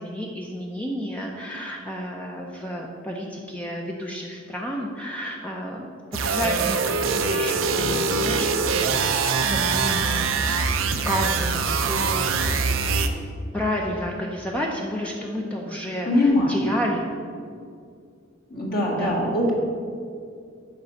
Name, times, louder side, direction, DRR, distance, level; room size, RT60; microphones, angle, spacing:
voice 1, 0.0-10.7 11.1-12.6 13.5-17.1 19.0-19.2, equal, 5° left, -2 dB, 0.6 m, -31 dB
sound 1, 6.1-13.1, right 4 dB, 85° right, 0.6 m, -23 dB
voice 2, 16.1-16.6 18.5-19.5, left 1 dB, 50° left, -2 dB, 1.9 m, -21 dB
6.6 x 5.4 x 7.1 m, 2.3 s
head